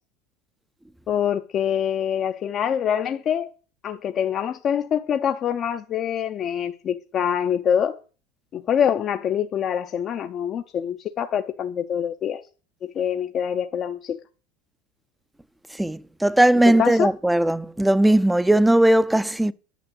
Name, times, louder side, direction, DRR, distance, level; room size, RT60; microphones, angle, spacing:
voice 1, 1.1-3.5 3.8-8.0 8.5-12.4 12.8-14.2 16.8-17.1, left 8 dB, 40° left, 0.6 m, -25 dB
voice 2, 15.8-19.5, right 1 dB, 5° right, 0.5 m, -18 dB
9.2 x 5.9 x 7.8 m
supercardioid pair, 105°, 0 cm